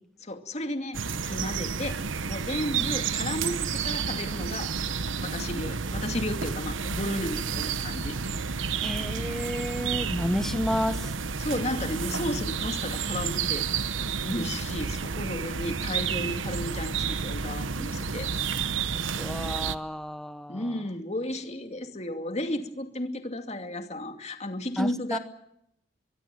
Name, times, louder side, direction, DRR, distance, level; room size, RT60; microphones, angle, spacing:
voice 1, 0.2-2.0 2.3-8.2 11.4-13.7 14.2-18.3 20.5-25.2, left 1 dB, 35° left, 6 dB, 2.5 m, -33 dB
sound 1, 0.9-19.8, right 5 dB, 90° right, 1.1 m, -31 dB
voice 2, 8.8-11.1 14.3-14.5 19.2-20.7 24.8-25.2, equal, ahead, 11 dB, 1.3 m, -31 dB
24.0 x 22.5 x 7.7 m, 0.76 s
head